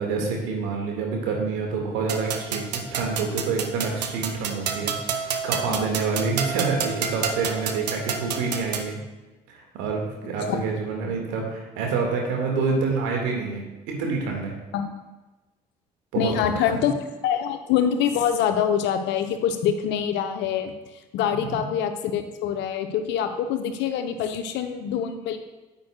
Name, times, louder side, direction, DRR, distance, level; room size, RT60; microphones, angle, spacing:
voice 1, 0.0-9.0 9.5-14.5 16.1-16.3 16.7-16.9 21.3-21.7, right 4 dB, 70° right, 0 dB, 1.8 m, -27 dB
sound 1, 2.1-8.9, right 6 dB, 85° right, 0.5 m, -30 dB
voice 2, 14.7-15.1 16.2-16.9 17.2-20.7 21.1-25.4, left 8 dB, 60° left, 7 dB, 0.8 m, -25 dB
9.4 x 9.0 x 2.3 m, 1.1 s
figure-of-eight pair, 50°, 20 cm